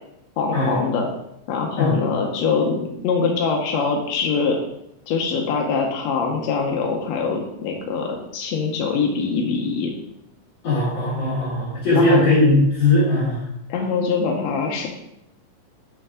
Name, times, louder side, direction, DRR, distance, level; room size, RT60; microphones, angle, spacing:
voice 1, 0.4-1.1 1.5-4.6 5.1-9.9 11.9-12.2 13.7-14.9, left 5 dB, 75° left, 1 dB, 1.6 m, -23 dB
voice 2, 10.6-13.5, left 2 dB, 50° left, -9 dB, 2.9 m, -19 dB
6.7 x 5.5 x 3.7 m, 0.81 s
omnidirectional pair, 3.9 m